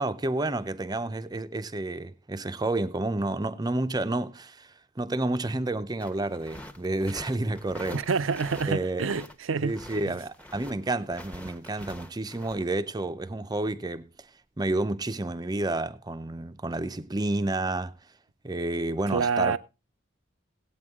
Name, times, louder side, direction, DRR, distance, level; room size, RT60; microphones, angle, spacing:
voice 1, 0.0-8.0 8.7-9.1 9.6-14.1 14.6-17.9 18.4-19.6, right 2 dB, 20° right, 0.6 m, -30 dB
sound 1, 6.0-9.3 9.6-12.6, equal, 5° left, 0.9 m, -44 dB
voice 2, 7.9-9.8 10.1-10.2 19.1-19.6, right 5 dB, 85° right, 0.6 m, -27 dB
17.0 x 8.7 x 3.6 m
head